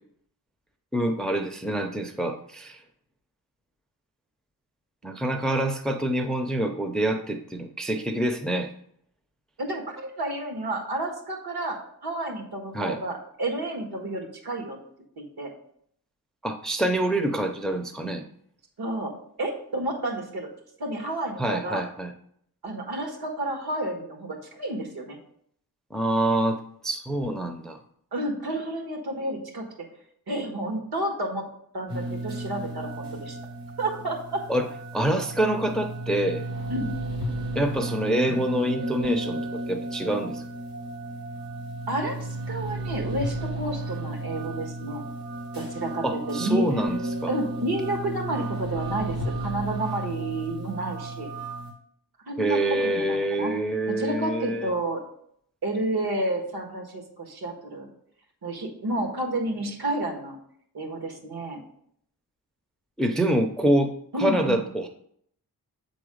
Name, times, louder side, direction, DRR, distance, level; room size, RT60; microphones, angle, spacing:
voice 1, 0.9-2.8 5.0-8.7 12.7-13.0 16.4-18.2 21.4-22.1 25.9-27.8 34.5-36.4 37.6-40.4 46.0-47.3 52.4-54.7 63.0-64.9, right 1 dB, ahead, 6 dB, 0.4 m, -26 dB
voice 2, 9.6-14.8 15.2-15.5 18.8-19.1 19.4-20.5 20.8-21.8 22.6-25.2 28.1-29.6 30.3-31.5 31.7-33.4 33.8-34.4 36.7-36.9 41.9-45.0 45.5-46.6 47.3-51.3 52.3-53.5 53.9-55.0 55.6-57.9 58.4-60.4 60.7-61.6 64.1-64.6, right 1 dB, 75° right, 2 dB, 1.6 m, -30 dB
sound 1, 31.9-51.7, right 1 dB, 90° right, 2.7 m, -33 dB
7.5 x 3.9 x 4.9 m, 0.67 s
wide cardioid pair, 140°, 38 cm